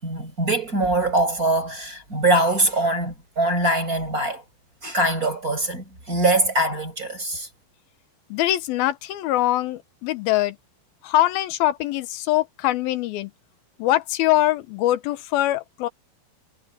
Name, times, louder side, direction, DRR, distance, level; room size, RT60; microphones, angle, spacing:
voice 1, 0.0-4.4 4.8-7.5, right 2 dB, 20° right, 6.7 m, -23 dB
voice 2, 8.3-10.6 11.0-13.3 13.8-15.9, left 14 dB, 90° left, 2.8 m, -23 dB
omnidirectional pair, 4.2 m